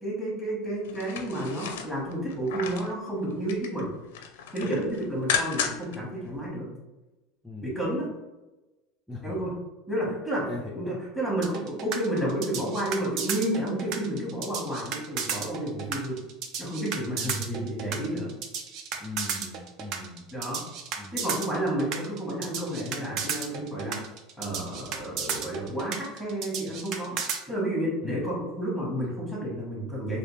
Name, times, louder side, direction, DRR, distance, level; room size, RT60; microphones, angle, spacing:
voice 1, 0.0-3.9 4.5-6.7 7.6-8.1 9.2-9.5 9.9-10.5 10.7-16.2 16.6-18.3 20.3-20.6 21.1-24.0 24.4-27.2 27.5-30.2, right 1 dB, 10° right, -5 dB, 1.3 m, -31 dB
sound 1, 0.8-2.9 3.3-3.8 4.1-6.0 6.3-6.4, left 7 dB, 90° left, 0.5 m, -33 dB
voice 2, 7.4-7.8 9.1-9.5 10.5-11.0 17.2-17.5 19.0-20.3 21.0-21.3 28.0-28.3, left 2 dB, 5° left, -3 dB, 0.4 m, -39 dB
sound 2, 11.4-27.4, right 6 dB, 50° right, 0.5 m, -33 dB
3.3 x 2.7 x 3.2 m, 1.1 s
supercardioid pair, 130°, 0 cm